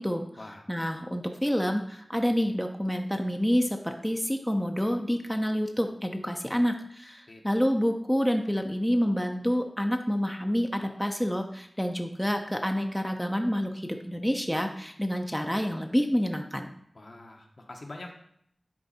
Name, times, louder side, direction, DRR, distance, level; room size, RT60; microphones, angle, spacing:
voice 1, 0.7-16.7, equal, 5° left, 4 dB, 0.7 m, -28 dB
voice 2, 16.9-18.1, left 2 dB, 60° left, 2 dB, 1.3 m, -44 dB
10.5 x 4.0 x 4.2 m, 0.69 s
wide cardioid pair, 55°, 0 cm